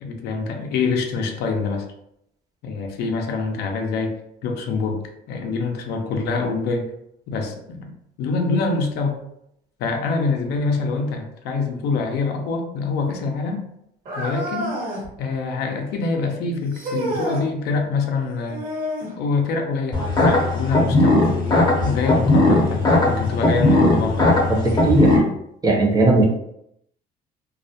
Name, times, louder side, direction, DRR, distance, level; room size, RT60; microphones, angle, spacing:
voice 1, 0.0-1.8 2.6-6.9 7.3-7.9 8.2-9.2 9.8-13.7 14.2-14.8 15.2-18.6 19.2-21.2 21.8-24.4, left 4 dB, 75° left, 3 dB, 0.5 m, -25 dB
sound 1, 14.1-15.1 16.7-17.5 18.5-19.2 21.2-21.4 22.2-22.3 23.3-23.4, right 1 dB, 55° right, 1.0 m, -29 dB
sound 2, 19.9-25.2, left 2 dB, 25° left, 0.6 m, -18 dB
voice 2, 24.6-25.2 25.6-26.2, right 2 dB, 20° right, 0 dB, 0.6 m, -18 dB
2.3 x 2.1 x 2.7 m, 0.76 s
cardioid pair, 110°, 17 cm